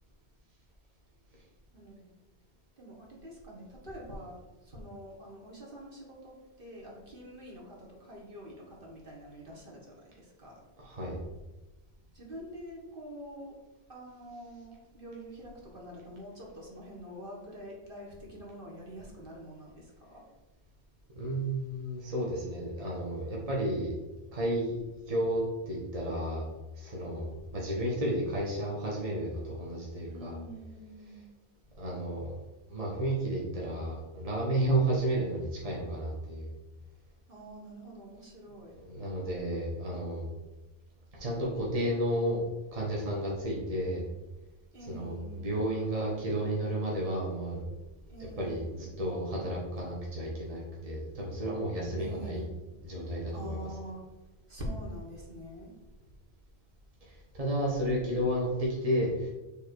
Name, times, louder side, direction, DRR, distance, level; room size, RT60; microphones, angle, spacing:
voice 1, 1.7-2.1 2.8-10.6 12.1-13.6 13.9-20.2 30.1-31.3 37.3-38.7 44.7-45.6 48.1-48.8 52.0-52.6 53.3-54.0 54.5-55.7, equal, 55° right, -3 dB, 1.7 m, -45 dB
voice 2, 10.8-11.2 21.2-23.9 24.3-24.8 25.1-26.4 26.8-30.4 31.8-32.4 32.7-36.5 38.7-40.3 41.1-42.4 42.7-44.0 44.9-47.6 48.2-52.4 52.8-53.7 57.0-59.3, right 1 dB, 35° right, -4 dB, 1.3 m, -32 dB
7.4 x 3.5 x 4.6 m, 1.1 s
omnidirectional pair, 1.1 m